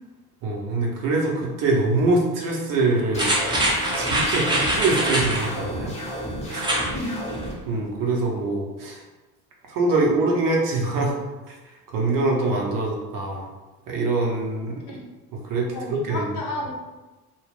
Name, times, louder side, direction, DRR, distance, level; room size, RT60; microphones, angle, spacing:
voice 1, 0.4-3.3 3.9-6.0 6.5-6.7 7.7-9.0 9.7-11.1 11.5-11.6 11.9-13.5 13.9-14.8 15.3-16.3, right 2 dB, 45° right, -1 dB, 0.7 m, -24 dB
sound 1, 3.1-7.5, equal, 15° left, 1.0 m, -32 dB
sound 2, 3.1-5.5 6.5-6.9 7.3-7.4, right 1 dB, 10° right, 0.7 m, -24 dB
voice 2, 15.7-16.7, left 2 dB, 40° left, -1 dB, 0.8 m, -32 dB
2.2 x 2.0 x 3.3 m, 1.2 s
figure-of-eight pair, 55°, 47 cm